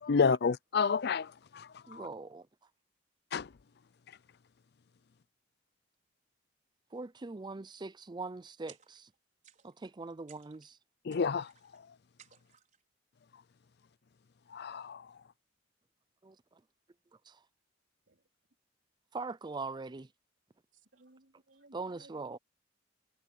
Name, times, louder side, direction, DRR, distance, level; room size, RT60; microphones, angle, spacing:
voice 1, 0.0-2.1 3.3-3.5 11.0-11.8 14.5-15.1, left 5 dB, 60° left, 0.5 m, -30 dB
voice 2, 1.9-2.5 6.9-9.1 9.6-10.8 16.2-16.4 17.3-17.4 19.1-20.1 21.7-22.4, right 3 dB, 25° right, 0.5 m, -41 dB
sound 1, 8.7-9.2 9.4-9.9 10.3-10.8 11.1-11.8 12.2-12.8, right 8 dB, 45° right, 5.5 m, -60 dB
voice 3, 20.7-22.4, right 2 dB, 80° right, 3.2 m, -62 dB
head